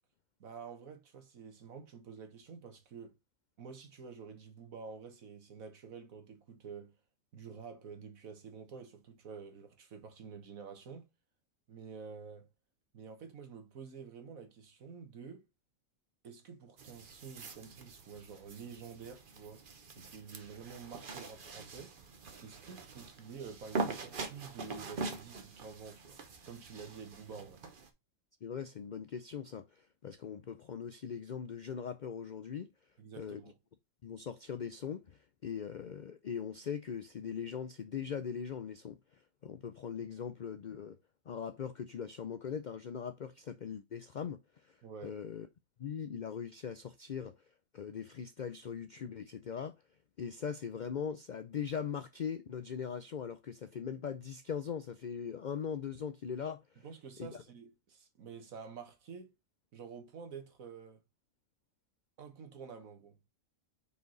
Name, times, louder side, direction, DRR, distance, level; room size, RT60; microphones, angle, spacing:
voice 1, 0.4-3.2 3.6-6.9 7.3-11.1 11.7-12.5 12.9-15.5 16.2-19.6 20.0-21.9 22.4-26.2 26.5-27.6 33.0-33.6 44.8-45.2 56.8-59.3 59.7-61.0 62.2-63.2, right 6 dB, 75° right, 1.8 m, -49 dB
sound 1, 16.8-27.9, right 3 dB, 45° right, 1.0 m, -43 dB
voice 2, 28.4-32.7 33.2-33.4 34.0-41.0 41.3-44.8 45.0-45.5 45.8-47.4 47.7-49.8 50.2-56.8 57.2-57.3, left 7 dB, 70° left, 0.4 m, -40 dB
5.1 x 4.7 x 3.9 m
omnidirectional pair, 1.4 m